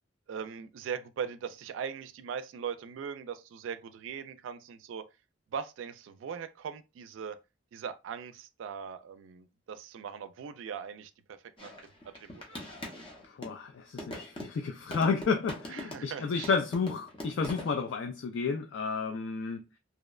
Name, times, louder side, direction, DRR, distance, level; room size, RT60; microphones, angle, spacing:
voice 1, 0.3-5.1 5.5-7.4 7.7-11.7 12.1-12.7 15.7-16.5, right 7 dB, 80° right, 0.3 m, -40 dB
sound 1, 11.6-13.6 14.0-16.2 16.4-17.8, left 1 dB, 25° left, 0.6 m, -42 dB
voice 2, 13.2-19.6, left 5 dB, 65° left, 0.3 m, -31 dB
2.7 x 2.1 x 2.3 m
head